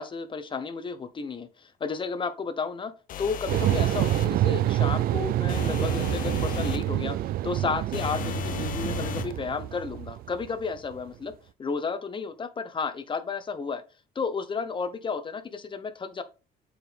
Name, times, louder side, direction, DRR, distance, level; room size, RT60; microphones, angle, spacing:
voice 1, 0.0-2.9 3.2-7.2 7.4-11.3 11.6-13.8 14.1-16.2, left 5 dB, 30° left, 1.0 m, -32 dB
sound 1, 3.1-4.4 5.5-6.9 7.9-9.4, left 10 dB, 55° left, 0.6 m, -35 dB
sound 2, 3.5-10.9, right 14 dB, 60° right, 0.4 m, -27 dB
7.7 x 4.8 x 3.5 m
cardioid pair, 110°, 17 cm